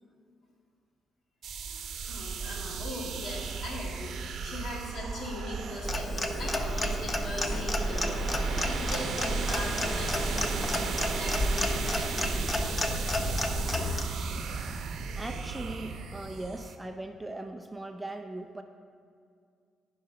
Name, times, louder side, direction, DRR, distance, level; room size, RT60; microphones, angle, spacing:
sound 1, 1.4-16.8, right 5 dB, 65° right, 0.8 m, -36 dB
voice 1, 2.1-12.4, left 1 dB, 60° left, -3 dB, 2.7 m, -40 dB
Clock, 5.8-14.0, left 1 dB, 25° left, 0.8 m, -31 dB
voice 2, 15.2-18.6, right 1 dB, 10° right, 4 dB, 0.6 m, -39 dB
14.0 x 4.9 x 5.7 m, 2.3 s
cardioid pair, 90°, 0 cm